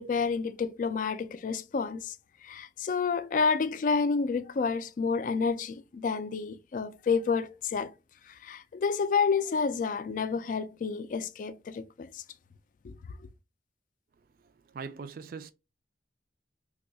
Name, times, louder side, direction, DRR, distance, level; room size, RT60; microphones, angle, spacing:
voice 1, 0.0-2.2 2.4-7.9 8.4-12.2 12.8-12.9, left 5 dB, 45° left, 0.3 m, -29 dB
voice 2, 14.7-15.5, right 5 dB, 55° right, 0.4 m, -40 dB
2.7 x 2.3 x 3.8 m
head